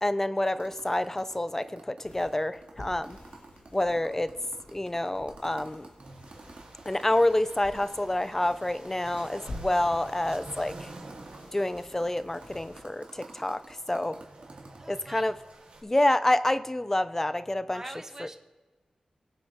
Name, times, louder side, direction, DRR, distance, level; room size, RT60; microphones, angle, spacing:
voice 1, 0.0-3.2 3.7-4.3 4.7-5.9 6.9-10.9 11.5-14.2 14.9-15.3 15.8-17.8 18.2-18.3, left 1 dB, 20° left, 14 dB, 0.6 m, -28 dB
sound 1, 0.6-8.6 8.8-8.9 9.1-14.8, right 3 dB, 60° right, 2.1 m, -50 dB
sound 2, 2.0-12.8, left 1 dB, 80° left, 2.3 m, -49 dB
sound 3, 6.0-15.8, right 2 dB, 85° right, 3.0 m, -49 dB
voice 2, 14.8-15.3 17.7-18.4, right 2 dB, 25° right, 6 dB, 1.0 m, -43 dB
21.0 x 7.5 x 3.7 m, 1.3 s
wide cardioid pair, 75°, 2 cm